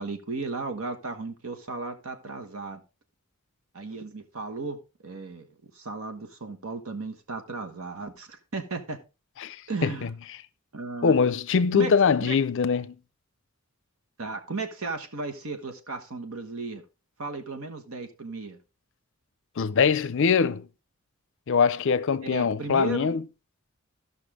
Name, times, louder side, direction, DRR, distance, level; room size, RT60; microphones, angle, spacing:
voice 1, 0.0-2.8 3.7-5.5 5.7-9.0 9.7-10.1 10.7-11.2 11.7-11.9 12.2-12.4 14.2-16.8 17.2-18.6 22.2-23.1, right 3 dB, 75° right, 1.3 m, -35 dB
voice 2, 11.0-12.9 19.6-20.7 21.5-23.2, left 5 dB, 60° left, 0.5 m, -22 dB
14.0 x 5.8 x 3.6 m
head